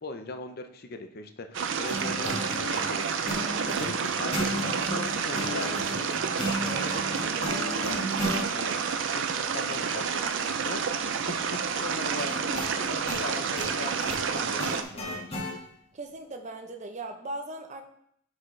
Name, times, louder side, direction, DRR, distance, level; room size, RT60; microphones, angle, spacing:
voice 1, 0.0-8.2 8.5-8.9 9.1-15.4, left 3 dB, 50° left, 6 dB, 0.7 m, -40 dB
sound 1, 1.5-14.8, right 6 dB, 70° right, 0.5 m, -29 dB
sound 2, 1.9-8.4 12.2-15.5, equal, 30° left, 1.7 m, -34 dB
voice 2, 15.9-17.8, right 2 dB, 35° right, 4 dB, 0.7 m, -38 dB
9.6 x 4.7 x 3.2 m, 0.70 s
head